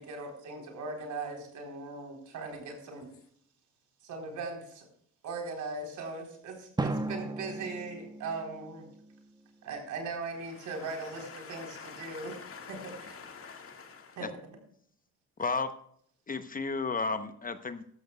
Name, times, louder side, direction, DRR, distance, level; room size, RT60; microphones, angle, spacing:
voice 1, 0.0-3.1 4.0-4.9 5.2-8.9 9.6-12.4 12.7-13.2 14.2-14.3, right 3 dB, 75° right, 2 dB, 4.0 m, -39 dB
Drum, 6.8-9.5, right 2 dB, 15° right, 1.1 m, -36 dB
voice 2, 11.3-14.2, left 5 dB, 45° left, 5 dB, 1.9 m, -46 dB
voice 3, 15.4-15.7 16.3-17.8, left 4 dB, 30° left, 10 dB, 0.9 m, -32 dB
13.5 x 13.0 x 2.3 m, 0.66 s
cardioid pair, 90°, 30 cm